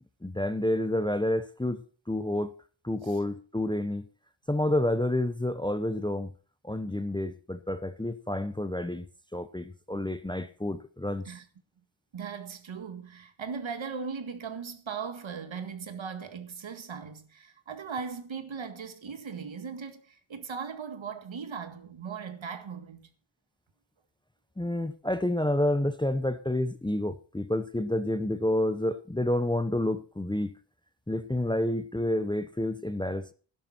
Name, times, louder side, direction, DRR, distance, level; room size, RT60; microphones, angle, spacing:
voice 1, 0.2-1.8 2.1-2.5 2.8-4.1 4.5-6.3 6.6-9.1 9.3-11.2 24.6-30.5 31.1-33.3, left 1 dB, 10° left, 0.7 m, -29 dB
voice 2, 12.1-23.1, right 6 dB, 65° right, 1.9 m, -38 dB
12.0 x 11.0 x 4.3 m
cardioid pair, 75°, 50 cm